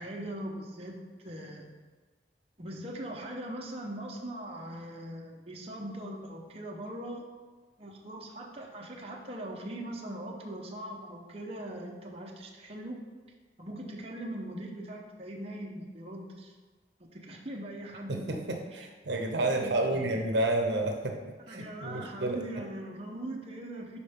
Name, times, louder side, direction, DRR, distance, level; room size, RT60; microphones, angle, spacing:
voice 1, 0.0-1.7 2.6-7.3 7.8-13.0 13.6-16.5 17.0-18.8 19.5-20.2 21.5-24.0, right 1 dB, 35° right, -1 dB, 0.9 m, -41 dB
voice 2, 18.1-21.2 21.5-22.4, right 2 dB, 75° right, 3 dB, 0.8 m, -30 dB
11.0 x 4.3 x 3.6 m, 1.3 s
head